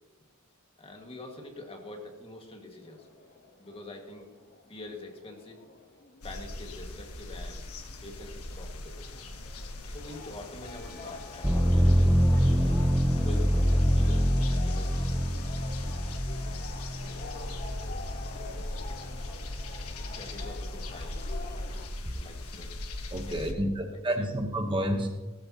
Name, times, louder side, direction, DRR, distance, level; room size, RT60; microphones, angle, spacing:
voice 1, 0.8-3.1 3.6-4.3 4.7-5.6 6.2-7.7 8.0-9.1 9.9-12.8 13.2-15.4 18.6-18.7 20.1-21.2 22.2-22.7 23.3-24.4, left 2 dB, 25° left, 2 dB, 1.8 m, -45 dB
sound 1, 2.8-21.9, left 3 dB, 45° left, 1.1 m, -47 dB
sound 2, 6.2-23.5, left 2 dB, 90° left, 1.4 m, -40 dB
sound 3, 11.4-19.2 19.7-20.5, equal, 5° right, 0.5 m, -26 dB
voice 2, 23.1-25.1, right 1 dB, 25° right, 3 dB, 1.0 m, -29 dB
17.5 x 13.5 x 2.9 m, 1.2 s
head